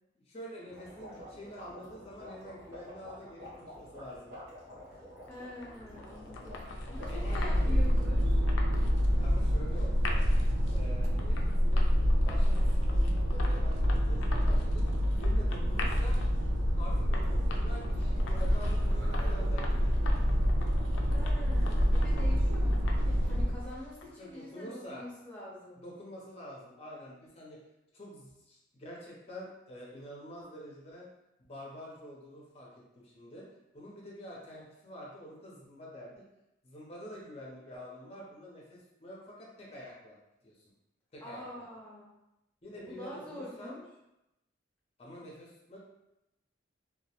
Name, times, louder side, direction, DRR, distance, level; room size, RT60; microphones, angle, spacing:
voice 1, 0.2-4.3 6.8-7.7 9.2-10.3 10.7-11.9 12.2-16.2 16.8-20.1 24.2-25.0 25.8-27.6 27.9-31.1 31.4-32.7 33.0-33.5 33.7-36.2 36.6-40.2 40.4-40.7 41.1-41.4 42.6-43.8 45.0-45.8, equal, 30° left, -4 dB, 0.5 m, -47 dB
sound 1, 0.7-7.3, left 1 dB, 60° right, 1.0 m, -49 dB
sound 2, 5.3-24.3, left 2 dB, 80° left, 0.3 m, -44 dB
voice 2, 5.3-8.4 21.0-25.8 41.2-42.1 42.7-43.8, left 1 dB, 5° left, -8 dB, 0.8 m, -45 dB
sound 3, 6.5-23.7, equal, 80° right, 0.4 m, -27 dB
2.2 x 2.1 x 2.8 m, 0.90 s
head